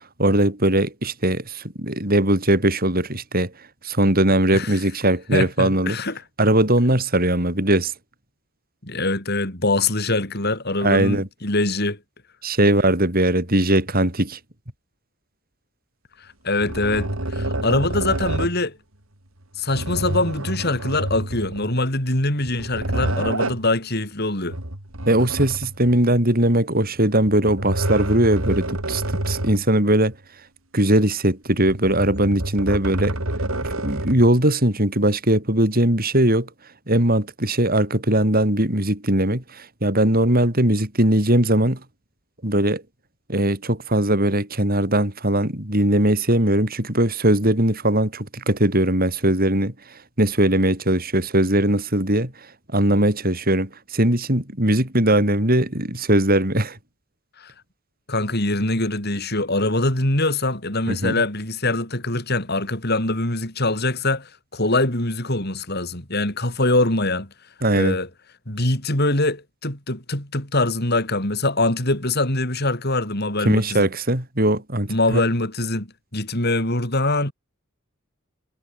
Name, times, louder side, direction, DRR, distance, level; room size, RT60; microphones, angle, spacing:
voice 1, 0.2-3.5 3.8-6.0 6.4-7.9 10.8-11.3 12.4-14.4 25.1-30.1 30.7-33.2 33.6-36.5 36.9-41.8 42.4-42.8 43.3-56.8 60.9-61.1 67.6-68.0 73.4-75.2, right 1 dB, 45° right, 7.3 m, -20 dB
voice 2, 5.3-6.2 8.8-12.0 16.2-18.8 19.6-24.6 57.4-57.5 58.1-67.3 67.7-68.1 68.5-73.9 74.9-77.3, left 2 dB, 50° left, 7.6 m, -23 dB
sound 1, 16.6-18.6 19.7-21.8 22.4-23.7 24.5-26.0 27.2-29.7 30.1-30.2 31.5-34.3, right 1 dB, 85° right, 4.4 m, -28 dB
head